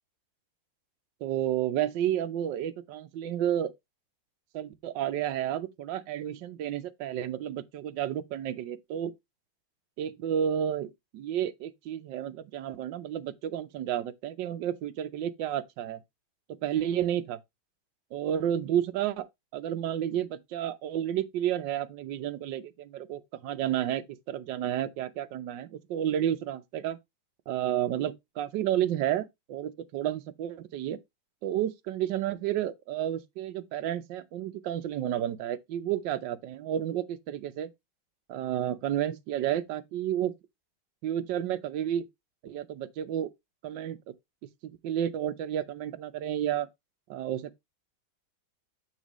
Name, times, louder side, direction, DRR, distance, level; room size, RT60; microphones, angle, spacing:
voice 1, 1.2-3.7 4.5-9.1 10.0-16.0 16.5-17.4 18.1-19.3 19.5-24.0 24.3-27.0 27.5-31.0 31.4-37.7 38.3-40.3 41.0-42.1 42.4-43.3 43.6-44.0 44.6-46.7 47.1-47.6, right 11 dB, 70° right, 1.4 m, -31 dB
8.1 x 5.8 x 3.0 m
omnidirectional pair, 2.2 m